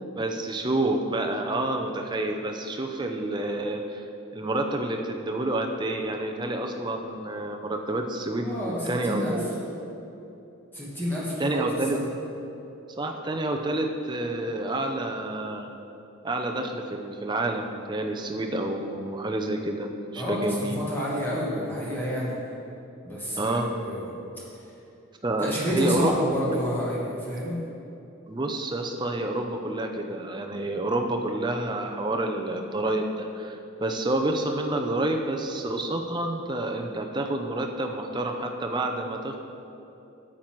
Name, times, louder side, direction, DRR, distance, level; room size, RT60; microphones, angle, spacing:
voice 1, 0.2-4.1 4.3-9.6 11.4-12.0 13.0-15.7 16.2-20.8 23.4-23.7 25.2-26.6 28.3-39.4, right 1 dB, 20° right, 3 dB, 0.6 m, -29 dB
voice 2, 8.4-9.4 10.7-12.1 20.1-22.3 23.0-24.1 25.4-27.6, equal, 10° left, -6 dB, 1.5 m, -29 dB
9.3 x 7.4 x 4.6 m, 2.9 s
head